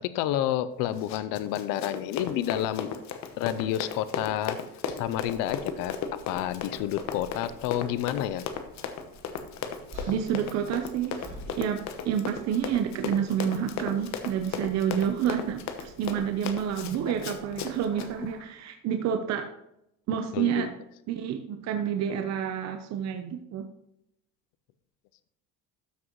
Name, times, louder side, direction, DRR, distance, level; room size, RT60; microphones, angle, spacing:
voice 1, 0.0-2.9 3.4-4.6 5.0-6.0 6.3-8.4 20.3-20.7, left 12 dB, 75° left, 14 dB, 0.6 m, -29 dB
Run, 0.9-18.1, left 7 dB, 55° left, 1.0 m, -36 dB
sound 1, 5.0-18.4, right 2 dB, 85° right, 2.1 m, -53 dB
sound 2, 9.9-12.2 12.5-12.9 13.9-14.3 15.6-15.9, equal, 25° right, 2.9 m, -46 dB
voice 2, 10.0-11.1 11.6-19.5 20.1-20.7 21.1-23.7, right 8 dB, 50° right, 5 dB, 0.8 m, -29 dB
13.0 x 6.1 x 3.1 m, 0.82 s
cardioid pair, 130°, 33 cm